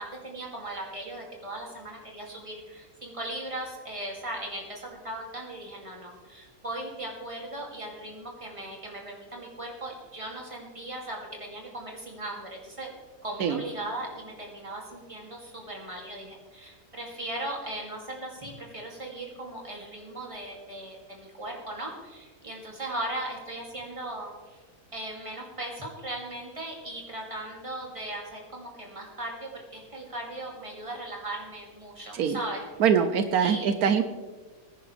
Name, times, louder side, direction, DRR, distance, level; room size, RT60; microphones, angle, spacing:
voice 1, 0.0-12.9 13.2-24.6 24.9-32.7 33.4-33.7, right 1 dB, 20° right, -2 dB, 2.7 m, -38 dB
voice 2, 32.8-34.0, right 7 dB, 80° right, 9 dB, 1.2 m, -23 dB
21.0 x 10.0 x 3.4 m, 1.3 s
omnidirectional pair, 1.6 m